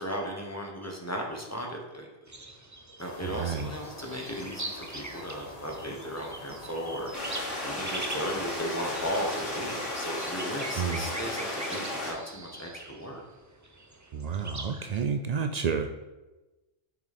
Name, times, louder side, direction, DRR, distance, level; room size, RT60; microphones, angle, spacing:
voice 1, 0.0-2.3 3.0-13.2, equal, 15° left, 0 dB, 1.1 m, -36 dB
sound 1, 2.3-15.0, right 2 dB, 20° right, 0.6 m, -43 dB
sound 2, 3.0-9.9, left 2 dB, 35° left, 0.9 m, -46 dB
voice 2, 3.4-3.7 10.8-11.1 14.1-15.9, right 6 dB, 65° right, 7 dB, 0.4 m, -30 dB
sound 3, 7.1-12.1, left 1 dB, 90° left, 3.1 m, -34 dB
7.2 x 6.2 x 4.3 m, 1.1 s
omnidirectional pair, 1.2 m